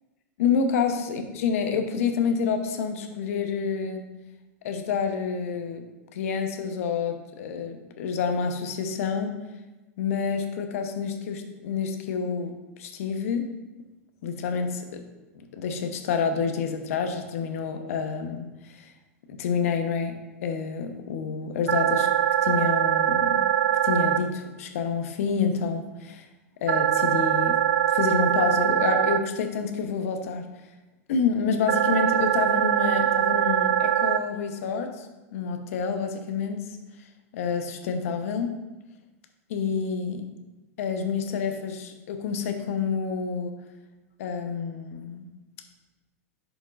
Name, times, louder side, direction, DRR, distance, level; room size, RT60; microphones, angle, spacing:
voice 1, 0.4-4.0 4.6-5.9 6.1-9.4 10.0-12.5 12.8-13.5 14.2-15.0 15.5-18.9 19.3-20.1 20.4-22.1 22.4-23.4 23.8-26.2 26.6-27.6 27.9-30.4 31.1-35.1 35.3-36.6 37.3-38.6 39.5-40.2 40.8-43.5 44.2-45.3, left 6 dB, 70° left, 6 dB, 0.9 m, -28 dB
sound 1, 21.7-24.2 26.7-29.2 31.7-34.2, right 10 dB, 80° right, 0.4 m, -22 dB
11.0 x 5.1 x 2.5 m, 1.1 s
hypercardioid pair, 110°, 8 cm